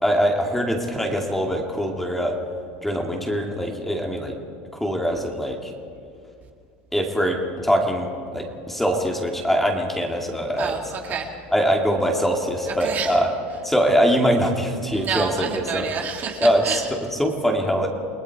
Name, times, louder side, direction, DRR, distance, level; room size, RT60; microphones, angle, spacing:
voice 1, 0.0-2.4 2.8-4.4 4.7-5.7 6.9-10.8 11.5-13.3 13.6-15.9 16.4-17.9, equal, 5° left, 1 dB, 2.5 m, -23 dB
voice 2, 10.6-11.3 12.8-13.1 14.9-16.9, right 6 dB, 40° right, 1 dB, 2.3 m, -28 dB
29.0 x 19.0 x 4.8 m, 2.4 s
supercardioid pair, 125°, 5 cm